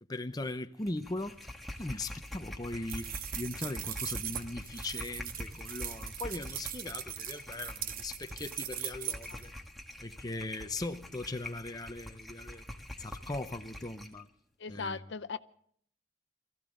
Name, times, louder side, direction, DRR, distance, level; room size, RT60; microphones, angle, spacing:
voice 1, 0.1-1.4 1.8-9.5 10.0-12.6 13.0-14.3 14.7-15.0, left 2 dB, 20° left, 0.7 m, -39 dB
sound 1, 0.8-14.2, left 1 dB, ahead, 1.4 m, -45 dB
sound 2, 2.9-9.4, right 10 dB, 45° right, 0.9 m, -40 dB
voice 2, 14.6-15.4, left 4 dB, 65° left, 0.6 m, -38 dB
23.5 x 15.0 x 3.8 m
head